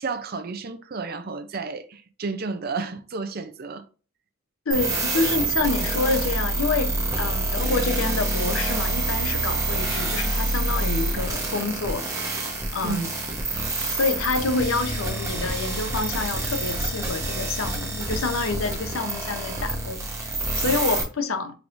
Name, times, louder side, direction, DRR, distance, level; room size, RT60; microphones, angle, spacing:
voice 1, 0.0-3.9 11.2-11.3 12.8-13.1, right 4 dB, 50° right, 0.5 m, -32 dB
voice 2, 4.7-12.1 12.7-13.1 13.9-21.5, left 3 dB, 85° left, 0.7 m, -27 dB
sound 1, 4.7-21.0, right 2 dB, 15° right, 1.0 m, -27 dB
4.6 x 3.7 x 2.5 m
head